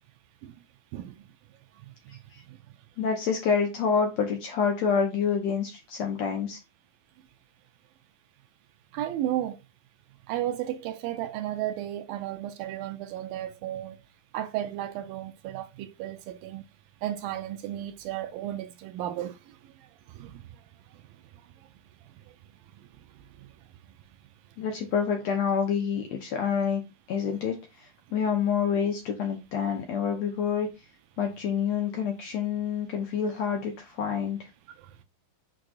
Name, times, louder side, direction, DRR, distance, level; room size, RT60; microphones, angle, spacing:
voice 1, 2.1-2.4 3.0-6.6 24.6-26.8 27.1-30.7 31.2-34.5, left 6 dB, 75° left, 1.6 m, -28 dB
voice 2, 8.9-9.6 10.3-14.0 14.3-16.6 17.0-20.4 23.4-23.5 34.8-34.9, right 12 dB, 80° right, 2.2 m, -34 dB
6.4 x 6.2 x 2.5 m
omnidirectional pair, 4.4 m